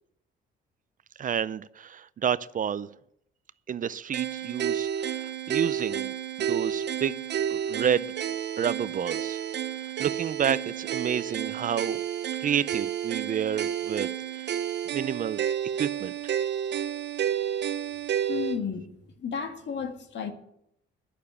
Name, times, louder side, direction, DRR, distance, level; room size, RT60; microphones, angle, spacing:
voice 1, 1.2-2.9 3.7-6.1 6.4-7.2 7.5-8.1 8.6-9.4 10.0-12.0 12.4-14.1 14.4-14.5 14.9-15.4 15.8-16.1, right 8 dB, 45° right, 0.5 m, -29 dB
sound 1, 4.1-18.6, right 9 dB, 60° right, 0.9 m, -31 dB
voice 2, 18.3-18.9 19.2-20.3, left 7 dB, 65° left, 1.8 m, -32 dB
11.5 x 6.7 x 8.4 m
cardioid pair, 90°, 20 cm